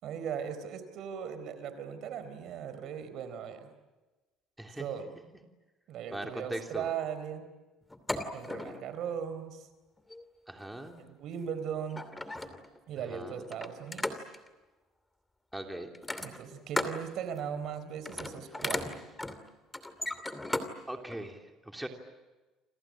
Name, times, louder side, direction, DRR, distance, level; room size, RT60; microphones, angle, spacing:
voice 1, 0.0-3.7 4.8-5.1 5.9-7.5 8.3-9.7 11.0-12.1 12.9-14.1 16.2-18.9, right 8 dB, 60° right, 11 dB, 4.1 m, -38 dB
voice 2, 6.1-6.9 10.5-11.0 13.1-13.4 15.5-15.9 20.9-21.9, right 1 dB, 5° right, 3 dB, 3.0 m, -40 dB
sound 1, 7.9-8.9 10.0-10.2 11.4-11.5 11.9-12.8 13.5-14.5 15.9-17.0 17.4-17.7 18.0-20.7 21.1-21.2, left 2 dB, 10° left, 2.7 m, -36 dB
29.0 x 26.0 x 7.6 m, 1.2 s
cardioid pair, 110°, 0 cm